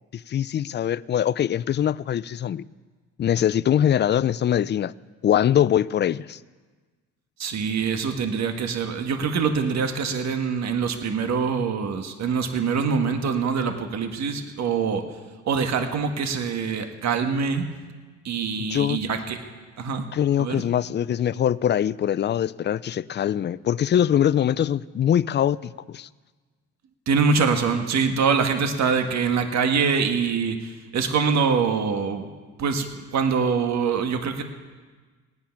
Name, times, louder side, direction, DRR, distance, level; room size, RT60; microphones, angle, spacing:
voice 1, 0.1-2.6 3.2-4.9 5.2-6.4 18.6-19.0 20.1-26.1, left 10 dB, 35° left, 18 dB, 0.4 m, -23 dB
voice 2, 7.4-15.1 15.4-17.7 18.2-19.4 19.8-20.1 20.4-20.6 27.1-32.3 32.6-34.4, right 5 dB, 65° right, 6 dB, 1.4 m, -24 dB
18.5 x 9.6 x 5.8 m, 1.4 s
cardioid pair, 90°, 30 cm